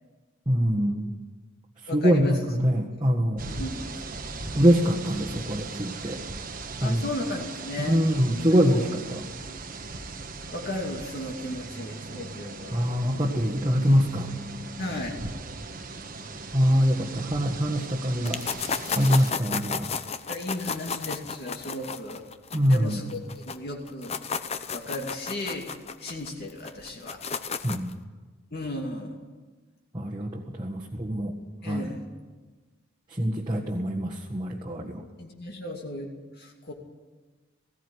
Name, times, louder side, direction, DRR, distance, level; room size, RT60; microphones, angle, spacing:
voice 1, 0.5-1.1 1.9-3.4 4.5-6.2 6.8-7.0 7.8-9.2 12.7-14.3 16.5-18.4 18.9-19.9 22.5-23.0 27.6-27.9 29.9-31.3 31.7-31.9 33.2-35.0, equal, 20° right, -4 dB, 1.7 m, -24 dB
voice 2, 1.9-2.4 3.5-3.9 6.8-8.0 8.7-8.8 9.4-9.6 10.5-12.9 13.8-14.1 14.8-15.2 20.3-22.2 22.7-23.2 23.5-24.1 24.7-25.7 26.0-27.2 28.5-29.2 31.6-32.1 35.2-36.1 36.4-36.7, left 1 dB, 45° left, 0 dB, 2.6 m, -35 dB
sound 1, 3.4-19.3, right 3 dB, 40° right, 1.3 m, -38 dB
sound 2, 18.3-23.6 23.9-27.9, left 6 dB, 30° left, 0.8 m, -33 dB
18.5 x 17.0 x 9.9 m, 1.3 s
head